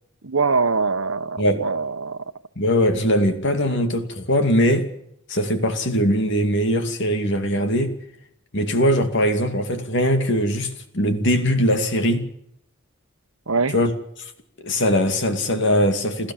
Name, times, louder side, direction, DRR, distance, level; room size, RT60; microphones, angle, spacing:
voice 1, 0.2-2.2 13.5-13.7, right 4 dB, 75° right, 1.1 m, -23 dB
voice 2, 2.6-4.9 5.3-7.9 8.5-12.3 13.7-13.9 14.6-16.3, equal, 55° left, 2.6 m, -21 dB
29.5 x 13.0 x 7.4 m
head